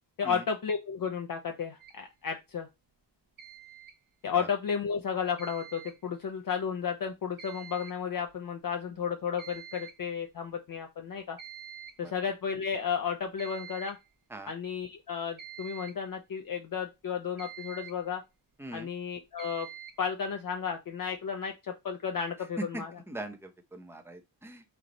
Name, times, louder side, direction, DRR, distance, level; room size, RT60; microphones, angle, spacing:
voice 1, 0.2-2.7 4.2-11.4 12.0-14.0 14.5-18.2 18.7-19.7 20.0-23.0, left 7 dB, 50° left, 0.5 m, -33 dB
sound 1, 1.8-2.0 3.4-4.0 5.4-6.0 7.4-8.0 8.3-8.4 8.9-9.0 9.4-10.0 11.4-12.0 13.4-14.1 15.4-16.1 17.4-18.1 19.4-20.1, right 9 dB, 50° right, 0.8 m, -46 dB
voice 2, 22.7-24.6, right 1 dB, 5° right, 0.6 m, -42 dB
3.5 x 3.4 x 3.9 m
wide cardioid pair, 160°, 44 cm